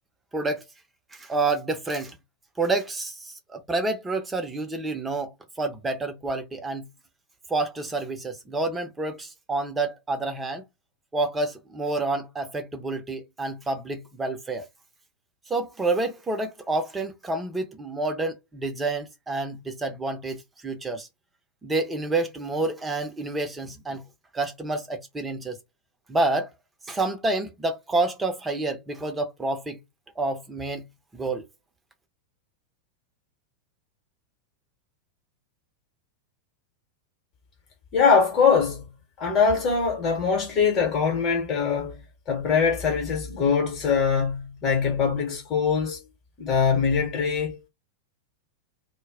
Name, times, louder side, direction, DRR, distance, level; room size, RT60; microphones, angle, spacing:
voice 1, 0.3-0.6 1.1-2.1 2.6-5.3 5.6-6.9 7.5-10.6 11.1-14.6 15.5-21.1 21.6-24.0 24.3-25.6 26.1-26.5 26.9-29.8 30.2-30.8 31.1-31.4, right 2 dB, 15° right, 0.7 m, -28 dB
voice 2, 37.9-38.9 39.2-42.0 42.3-46.0 46.4-47.7, left 6 dB, 30° left, 1.0 m, -22 dB
2.2 x 2.1 x 3.5 m
figure-of-eight pair, 90°, 0 cm